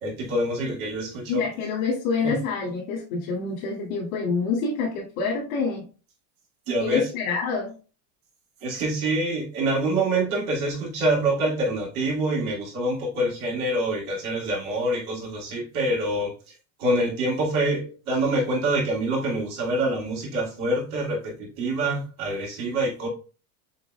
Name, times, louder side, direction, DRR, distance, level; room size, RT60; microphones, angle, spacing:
voice 1, 0.0-1.4 2.2-2.4 6.7-7.1 8.6-16.3 16.8-23.1, right 1 dB, 90° right, -3 dB, 2.4 m, -26 dB
voice 2, 1.3-5.8 6.8-7.7, left 4 dB, 85° left, -5 dB, 2.4 m, -27 dB
7.1 x 3.0 x 2.3 m, 0.35 s
supercardioid pair, 120°, 42 cm